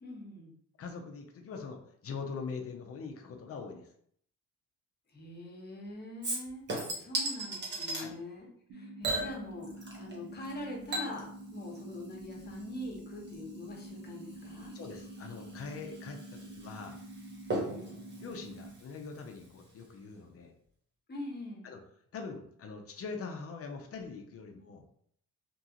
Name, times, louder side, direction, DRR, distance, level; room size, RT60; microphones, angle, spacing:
voice 1, 0.0-0.5 5.1-9.7 10.0-14.7 17.6-18.0 21.1-21.7, left 1 dB, 35° left, -1 dB, 1.0 m, -43 dB
voice 2, 0.8-3.9 7.9-8.2 14.7-17.0 18.2-20.5 21.6-21.8 22.1-24.8, left 5 dB, 50° left, 3 dB, 0.6 m, -43 dB
Chink clink / Liquid, 6.2-8.1 9.0-10.2 10.4-19.5 19.8-19.9, right 2 dB, 35° right, 1.0 m, -39 dB
sound 1, 8.7-18.7, right 1 dB, 85° right, 0.6 m, -47 dB
2.9 x 2.4 x 2.8 m, 0.65 s
cardioid pair, 90°, 30 cm